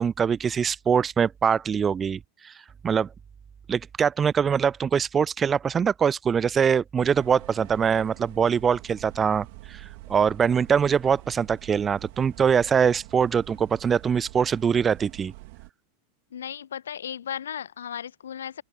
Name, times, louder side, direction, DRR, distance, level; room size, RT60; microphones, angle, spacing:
voice 1, 0.0-2.2 2.4-2.5 2.8-3.1 3.7-9.8 10.1-15.3, right 7 dB, 20° right, 0.4 m, -23 dB
sound 1, 7.0-15.7, right 26 dB, 50° right, 3.5 m, -45 dB
voice 2, 16.3-18.6, left 9 dB, 65° left, 1.1 m, -35 dB
open air
figure-of-eight pair, 90°, 0 cm